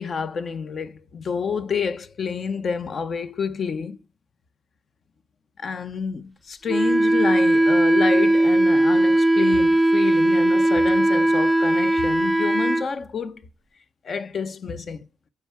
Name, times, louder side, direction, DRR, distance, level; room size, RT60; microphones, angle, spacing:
voice 1, 0.0-4.0 5.6-13.4 14.0-15.0, left 6 dB, 45° left, 1.0 m, -29 dB
Wind instrument woodwind instrument, 6.7-12.9, right 1 dB, 5° right, 0.6 m, -18 dB
9.1 x 4.7 x 7.3 m
cardioid pair, 90°, 0 cm